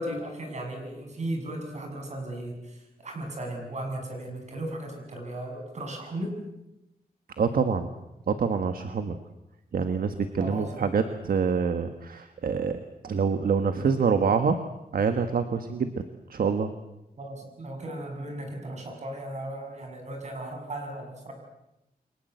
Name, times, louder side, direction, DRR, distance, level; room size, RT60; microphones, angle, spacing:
voice 1, 0.0-6.4 10.4-10.9 17.2-21.3, right 1 dB, 45° right, 3 dB, 6.9 m, -36 dB
voice 2, 7.4-7.9 8.3-9.2 9.7-12.8 13.0-14.6 14.9-16.0 16.3-16.7, right 5 dB, 65° right, 8 dB, 1.6 m, -26 dB
29.5 x 23.5 x 8.1 m, 0.91 s
wide cardioid pair, 160°, 16 cm